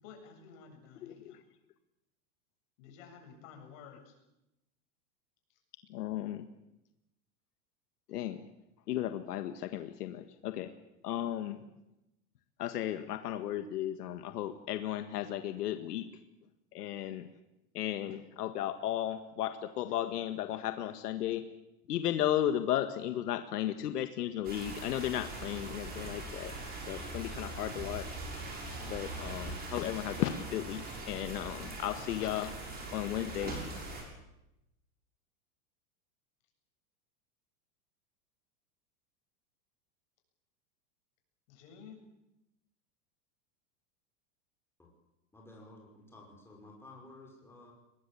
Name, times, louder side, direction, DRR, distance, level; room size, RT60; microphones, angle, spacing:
voice 1, 0.0-1.4 2.8-4.1 41.5-42.0, left 6 dB, 55° left, 3 dB, 7.7 m, -52 dB
voice 2, 1.0-1.4 5.9-6.4 8.1-8.4 8.9-10.7 11.0-11.5 12.6-16.1 16.7-17.2 17.7-21.4 21.9-26.5 26.9-28.2 28.9-32.5 32.9-33.5, left 12 dB, 90° left, 8 dB, 1.9 m, -35 dB
sound 1, 24.4-34.0, right 2 dB, 20° right, 6.8 m, -41 dB
voice 3, 45.3-47.7, left 2 dB, 5° left, -1 dB, 5.3 m, -53 dB
23.0 x 20.0 x 8.6 m, 0.91 s
supercardioid pair, 155°, 45 cm